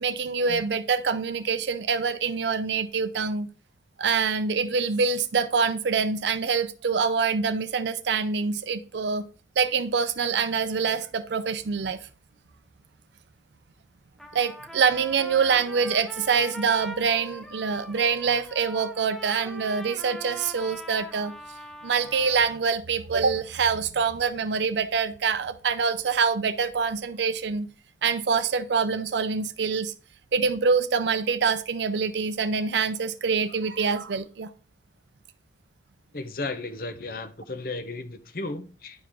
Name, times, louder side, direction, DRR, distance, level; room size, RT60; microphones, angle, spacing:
voice 1, 0.0-3.5 4.0-9.2 9.6-12.0 14.3-21.3 21.8-27.7 28.0-29.9 30.3-34.5, right 5 dB, 75° right, 0.5 m, -25 dB
Trumpet, 14.2-22.6, equal, ahead, 0.6 m, -41 dB
voice 2, 36.1-39.1, left 2 dB, 50° left, 0.8 m, -34 dB
10.0 x 4.8 x 3.6 m
head